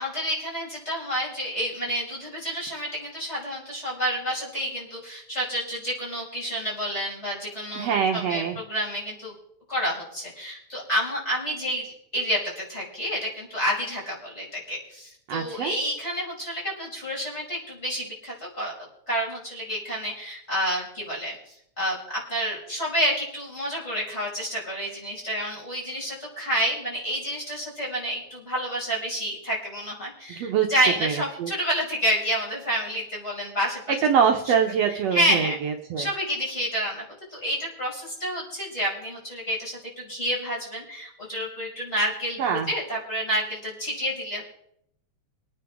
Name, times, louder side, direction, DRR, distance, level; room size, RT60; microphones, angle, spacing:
voice 1, 0.0-9.3 9.7-18.7 19.1-22.0 22.3-33.8 35.1-35.6 36.0-37.0 37.3-44.4, equal, 20° left, -5 dB, 5.8 m, -29 dB
voice 2, 7.8-8.6 15.3-15.7 30.3-30.7 31.0-31.5 34.0-36.1 42.4-42.7, right 7 dB, 65° right, 3 dB, 1.9 m, -24 dB
24.5 x 9.3 x 3.6 m, 0.73 s
omnidirectional pair, 3.4 m